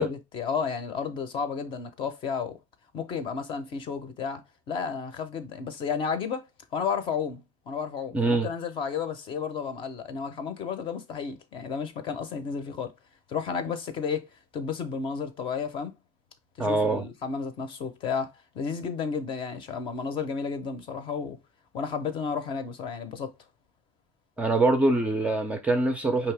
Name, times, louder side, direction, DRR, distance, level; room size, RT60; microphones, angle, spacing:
voice 1, 0.0-2.6 2.9-6.5 6.7-12.9 13.3-15.9 16.6-21.4 21.7-23.3, left 6 dB, 35° left, 0.7 m, -32 dB
voice 2, 8.1-8.5 16.6-17.0 24.4-26.3, right 2 dB, 10° right, 0.5 m, -24 dB
5.3 x 2.9 x 3.3 m
cardioid pair, 170°, 14 cm